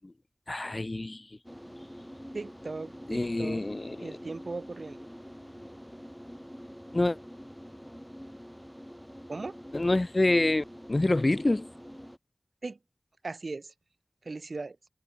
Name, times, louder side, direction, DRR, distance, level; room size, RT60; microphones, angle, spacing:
voice 1, 0.5-1.2 3.1-4.2 6.9-7.2 9.7-11.7, left 2 dB, 40° left, 0.4 m, -27 dB
sound 1, 1.4-12.2, equal, 5° left, 2.3 m, -46 dB
voice 2, 2.3-3.6 4.0-5.0 9.3-9.6 12.6-12.8 13.2-13.7 14.2-14.8, right 3 dB, 75° right, 1.4 m, -38 dB
wide cardioid pair, 50°, 0 cm